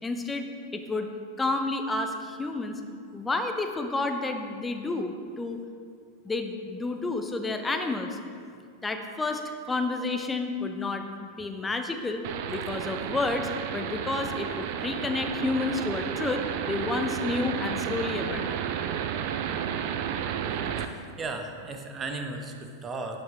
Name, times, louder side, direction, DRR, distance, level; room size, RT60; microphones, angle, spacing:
voice 1, 0.0-1.1 1.4-2.8 3.1-5.6 6.2-8.2 8.8-9.4 9.7-18.6, left 3 dB, 10° left, 6 dB, 0.8 m, -30 dB
sound 1, 12.2-20.9, right 8 dB, 45° right, 0.5 m, -32 dB
voice 2, 20.8-23.2, right 3 dB, 20° right, 5 dB, 0.9 m, -36 dB
11.5 x 8.0 x 3.4 m, 2.3 s
figure-of-eight pair, 90°, 0 cm